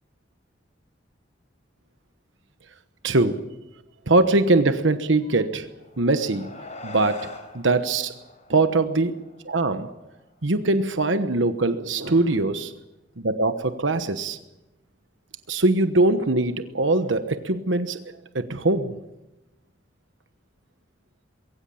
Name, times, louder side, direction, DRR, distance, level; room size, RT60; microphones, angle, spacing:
voice 1, 3.0-3.5 4.1-5.7 6.0-6.5 6.8-8.1 8.5-9.9 10.4-12.7 13.2-14.4 15.5-19.0, right 2 dB, 85° right, 1.2 m, -22 dB
sound 1, 5.7-10.4, left 2 dB, 40° left, 4.1 m, -43 dB
22.5 x 16.0 x 8.7 m
head